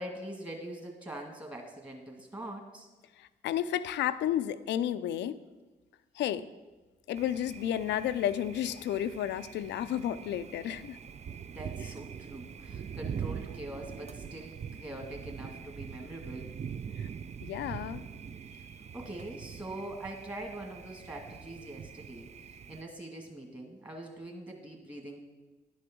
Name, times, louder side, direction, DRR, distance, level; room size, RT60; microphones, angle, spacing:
voice 1, 0.0-2.9 11.5-16.5 18.9-25.2, right 1 dB, 25° right, 1 dB, 2.0 m, -43 dB
voice 2, 3.2-5.4 6.1-6.5 7.1-11.0 17.0-17.1 17.4-18.1, left 11 dB, 85° left, 13 dB, 0.5 m, -32 dB
Thunder, 7.2-22.8, right 7 dB, 40° right, 0.4 m, -43 dB
10.5 x 6.3 x 6.0 m, 1.2 s
supercardioid pair, 55°, 18 cm